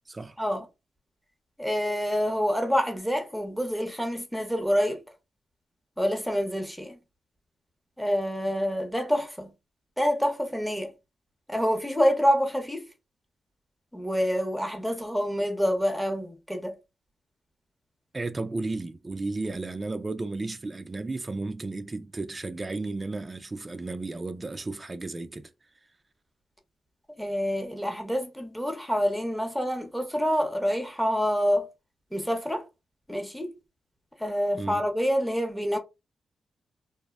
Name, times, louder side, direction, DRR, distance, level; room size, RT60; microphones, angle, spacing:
voice 1, 1.6-5.0 6.0-7.0 8.0-9.5 10.0-10.9 11.5-12.9 13.9-16.8 27.2-31.7 32.1-32.6 33.1-33.5 34.2-35.8, equal, ahead, 0.7 m, -27 dB
voice 2, 18.1-25.5 34.6-34.9, right 3 dB, 30° right, 0.3 m, -33 dB
2.6 x 2.0 x 2.3 m
cardioid pair, 65°, 0 cm